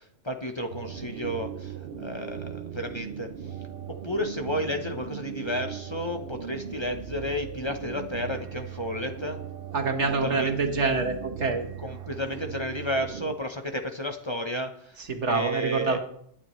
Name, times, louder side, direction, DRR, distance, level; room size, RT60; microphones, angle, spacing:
voice 1, 0.0-3.3 3.9-9.4 10.2-10.5 11.8-15.0 15.3-16.0, left 1 dB, 25° left, 5 dB, 1.0 m, -32 dB
sound 1, 0.7-13.4, right 8 dB, 60° right, 0.9 m, -38 dB
voice 2, 9.7-11.6 15.1-16.0, right 4 dB, 80° right, 4 dB, 1.9 m, -26 dB
20.5 x 9.7 x 3.2 m, 0.70 s
omnidirectional pair, 1.2 m